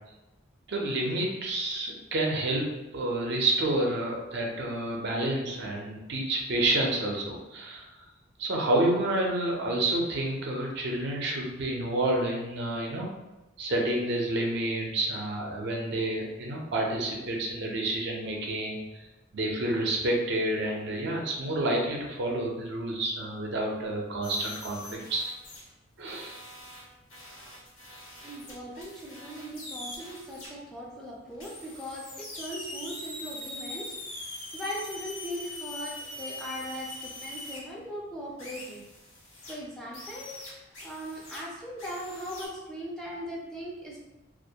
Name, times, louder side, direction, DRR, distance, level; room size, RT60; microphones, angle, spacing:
voice 1, 0.7-7.9 8.4-13.1 13.6-18.8 19.3-25.2 26.0-26.4, right 1 dB, 55° right, -1 dB, 0.4 m, -29 dB
sound 1, 24.2-25.7 26.1-30.5 31.4-37.6 38.4-39.5 39.9-41.4 41.8-42.5, left 2 dB, 75° left, 0.9 m, -42 dB
voice 2, 28.2-38.8 39.5-44.0, equal, ahead, -5 dB, 0.4 m, -39 dB
2.3 x 2.1 x 2.7 m, 1.0 s
head